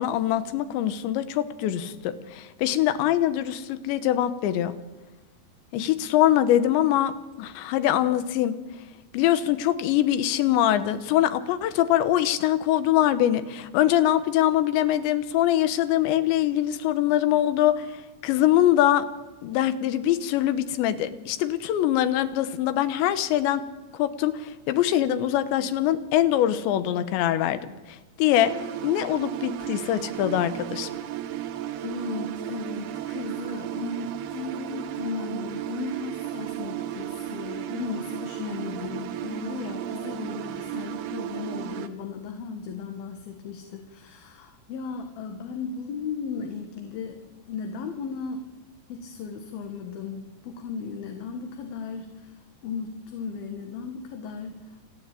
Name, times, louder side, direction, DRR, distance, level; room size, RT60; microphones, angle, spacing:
voice 1, 0.0-4.8 5.7-8.6 9.1-19.1 19.4-23.6 23.9-28.5 28.8-30.9, left 12 dB, 90° left, 13 dB, 3.4 m, -23 dB
sound 1, 28.3-41.9, right 12 dB, 75° right, 3.1 m, -34 dB
voice 2, 31.8-47.2 47.5-48.5 48.9-52.4 52.6-54.8, left 5 dB, 65° left, 5 dB, 3.2 m, -36 dB
27.5 x 11.0 x 9.1 m, 1.2 s
omnidirectional pair, 5.0 m